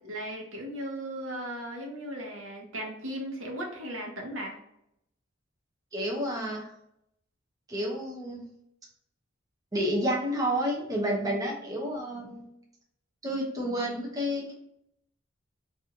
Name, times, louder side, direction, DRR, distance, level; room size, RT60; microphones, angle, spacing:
voice 1, 0.0-4.6, equal, 75° right, 0 dB, 1.0 m, -37 dB
voice 2, 5.9-6.7 7.7-8.4 9.7-12.5 13.2-14.5, equal, 20° right, -2 dB, 0.7 m, -30 dB
3.0 x 2.6 x 3.6 m, 0.78 s
head